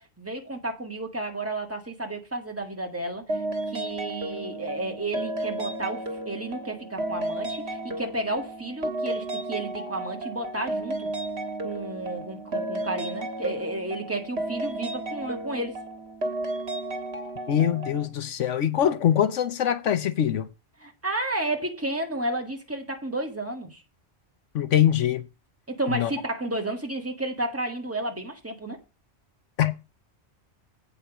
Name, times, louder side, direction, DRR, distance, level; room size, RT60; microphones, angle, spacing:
voice 1, 0.0-3.4 3.7-11.1 11.6-15.7 20.8-23.8 25.7-28.8, right 2 dB, 10° right, 1.8 m, -32 dB
sound 1, 3.3-18.1, right 1 dB, 60° right, 1.9 m, -33 dB
voice 2, 17.5-20.5 24.5-25.2 25.9-26.1 29.6-29.7, left 10 dB, 85° left, 1.2 m, -23 dB
8.3 x 5.5 x 6.1 m
omnidirectional pair, 1.2 m